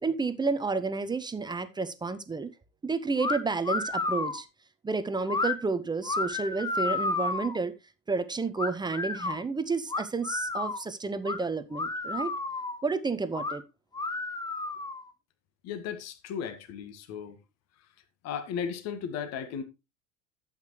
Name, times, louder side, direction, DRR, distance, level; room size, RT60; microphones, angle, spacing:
voice 1, 0.0-2.5 2.8-4.5 4.8-7.7 8.1-12.3 12.8-13.6, right 4 dB, 10° right, 0.8 m, -31 dB
sound 1, 3.2-3.4 3.6-4.4 5.3-5.5 6.0-7.6 8.6-9.4 9.9-10.8 11.2-11.4 11.7-12.8 13.3-13.6 13.9-15.1, left 3 dB, 10° left, 1.0 m, -31 dB
voice 2, 15.6-17.4 18.2-19.6, left 7 dB, 40° left, 1.8 m, -35 dB
11.5 x 8.3 x 3.2 m
figure-of-eight pair, 85°, 39 cm